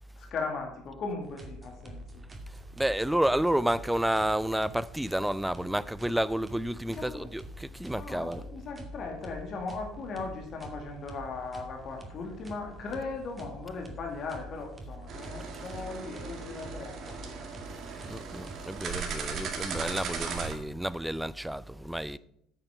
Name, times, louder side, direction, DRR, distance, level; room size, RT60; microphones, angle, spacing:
voice 1, 0.2-2.2 6.9-7.3 7.9-17.5 21.8-22.0, left 4 dB, 40° left, 2.2 m, -38 dB
sound 1, 1.2-20.7, right 1 dB, 20° right, 2.3 m, -47 dB
voice 2, 2.8-8.4 18.1-22.2, right 1 dB, 5° right, 0.5 m, -30 dB
sound 2, 15.1-20.5, right 5 dB, 45° right, 2.1 m, -37 dB
8.8 x 8.8 x 5.7 m
figure-of-eight pair, 60°, 0 cm